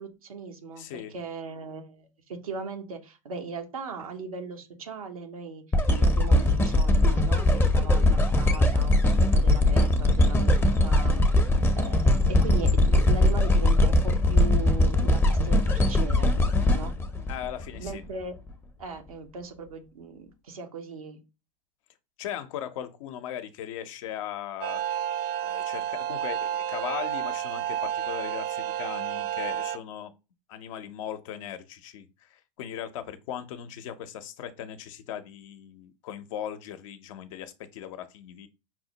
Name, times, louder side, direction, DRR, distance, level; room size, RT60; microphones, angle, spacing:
voice 1, 0.0-0.9 1.1-11.4 11.7-16.3 16.7-16.9 17.8-18.4 18.8-21.2, right 4 dB, 90° right, 0.8 m, -38 dB
voice 2, 0.8-1.1 4.0-4.1 17.3-18.0 22.2-24.8 25.4-30.1 30.5-38.5, left 10 dB, 65° left, 0.6 m, -38 dB
sound 1, 5.7-17.9 18.5-18.6, left 1 dB, 15° left, 0.6 m, -21 dB
sound 2, 24.6-29.8, right 11 dB, 55° right, 0.4 m, -31 dB
5.7 x 2.1 x 2.8 m
hypercardioid pair, 95°, 18 cm